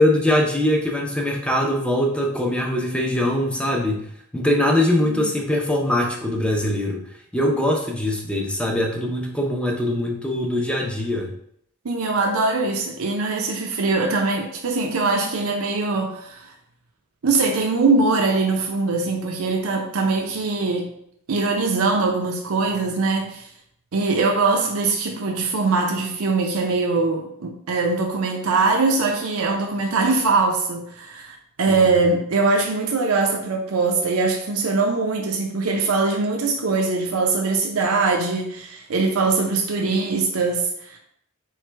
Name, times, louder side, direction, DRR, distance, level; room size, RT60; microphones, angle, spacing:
voice 1, 0.0-4.1 4.3-7.0 7.3-11.3 31.7-31.9, left 1 dB, 5° left, 1 dB, 0.6 m, -22 dB
voice 2, 11.8-16.5 17.2-20.9 21.3-23.5 23.9-41.0, right 3 dB, 80° right, 1 dB, 0.6 m, -22 dB
4.1 x 3.2 x 3.3 m, 0.73 s
head